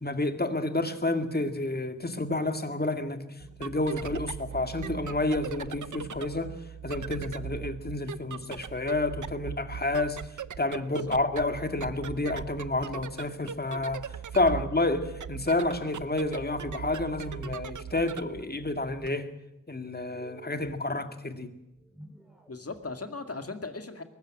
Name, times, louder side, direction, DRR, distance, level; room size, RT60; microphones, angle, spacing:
voice 1, 0.0-3.2 3.6-6.5 6.8-10.2 10.6-14.0 14.3-19.3 19.7-21.5, left 2 dB, 35° left, 2.2 m, -29 dB
sound 1, 3.4-19.1, right 8 dB, 80° right, 0.7 m, -40 dB
sound 2, 10.7-11.3 12.3-13.0 14.4-15.0 16.4-17.1 18.4-19.1 19.9-20.8 21.7-22.9, right 1 dB, ahead, 5.1 m, -51 dB
voice 2, 22.5-24.0, left 3 dB, 50° left, 2.3 m, -38 dB
22.0 x 14.0 x 9.7 m
wide cardioid pair, 60°, 30 cm